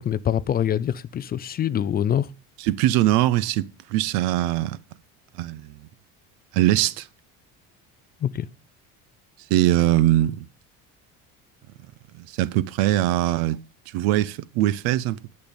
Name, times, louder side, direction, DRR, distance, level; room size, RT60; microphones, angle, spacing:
voice 1, 0.0-2.3 8.2-8.5, left 10 dB, 30° left, 0.5 m, -25 dB
voice 2, 2.6-4.8 5.4-5.7 6.5-7.1 9.5-10.5 12.2-13.6 13.9-15.2, right 14 dB, 90° right, 0.8 m, -21 dB
10.5 x 6.8 x 5.2 m
cardioid pair, 150°, 34 cm